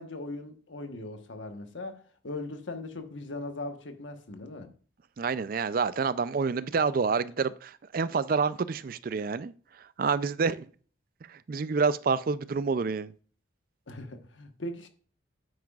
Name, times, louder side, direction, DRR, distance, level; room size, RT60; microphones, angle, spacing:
voice 1, 0.0-4.7 13.9-14.9, left 2 dB, 75° left, 1.2 m, -39 dB
voice 2, 5.2-9.5 10.0-10.7 11.5-13.1, right 5 dB, 45° right, 0.4 m, -28 dB
9.4 x 8.6 x 2.4 m
head